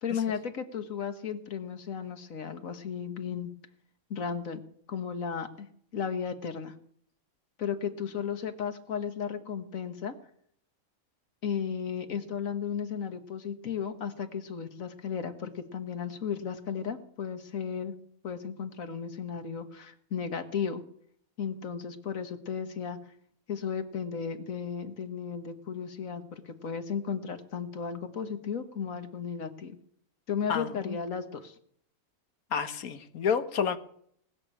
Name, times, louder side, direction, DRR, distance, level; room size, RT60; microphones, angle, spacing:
voice 1, 0.0-3.5 4.1-4.6 4.9-5.7 5.9-6.7 7.6-10.2 11.4-17.9 18.2-20.8 21.4-23.0 23.5-29.8 30.3-31.5, left 7 dB, 70° left, 8 dB, 1.7 m, -34 dB
voice 2, 30.5-31.0 32.5-33.8, left 7 dB, 85° left, 10 dB, 1.5 m, -30 dB
19.5 x 6.6 x 8.7 m, 0.66 s
omnidirectional pair, 1.5 m